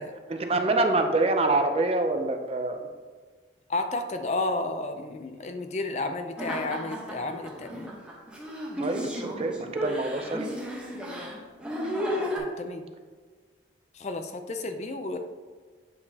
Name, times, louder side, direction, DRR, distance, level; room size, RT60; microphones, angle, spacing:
voice 1, 0.3-2.8 8.8-10.5, right 2 dB, 35° right, 6 dB, 0.5 m, -26 dB
voice 2, 3.7-7.9 12.4-12.9 13.9-15.2, left 2 dB, 35° left, 7 dB, 0.4 m, -32 dB
sound 1, 6.4-12.4, equal, 5° right, 1.0 m, -33 dB
8.3 x 4.9 x 2.8 m, 1.5 s
head